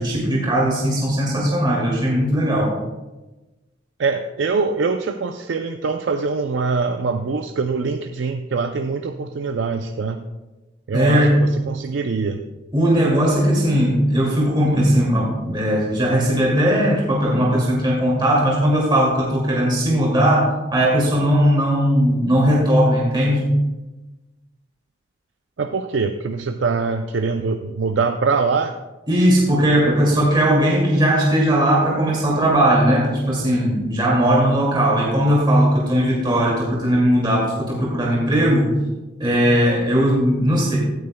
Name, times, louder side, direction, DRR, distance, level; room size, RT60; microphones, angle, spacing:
voice 1, 0.0-2.7 10.9-11.5 12.7-23.5 29.1-38.7 39.2-40.8, equal, 25° right, -4 dB, 2.3 m, -18 dB
voice 2, 4.0-10.2 10.9-12.4 25.6-28.7, right 4 dB, 80° right, 6 dB, 0.5 m, -23 dB
16.5 x 9.3 x 2.2 m, 1.1 s
head